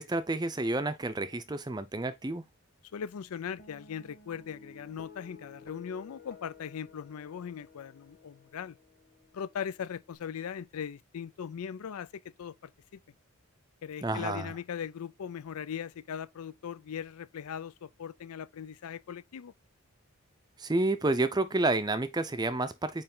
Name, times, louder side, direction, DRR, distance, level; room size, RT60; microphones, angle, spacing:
voice 1, 0.0-2.4 14.0-14.5 20.6-23.0, right 2 dB, 20° right, 0.5 m, -30 dB
voice 2, 2.9-8.8 9.3-13.0 13.8-19.5, left 7 dB, 80° left, 0.4 m, -39 dB
Guitar, 3.6-10.2, left 4 dB, 40° left, 1.5 m, -54 dB
8.8 x 3.1 x 3.8 m
head